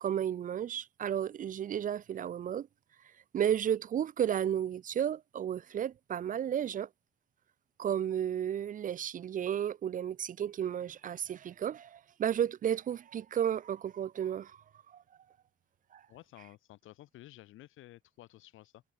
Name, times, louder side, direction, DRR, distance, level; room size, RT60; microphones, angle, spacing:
voice 1, 0.0-2.7 3.3-6.9 7.8-15.0 15.9-16.0, right 9 dB, 40° right, 0.4 m, -33 dB
voice 2, 16.1-18.8, left 15 dB, 90° left, 4.1 m, -53 dB
cardioid pair, 90°, 20 cm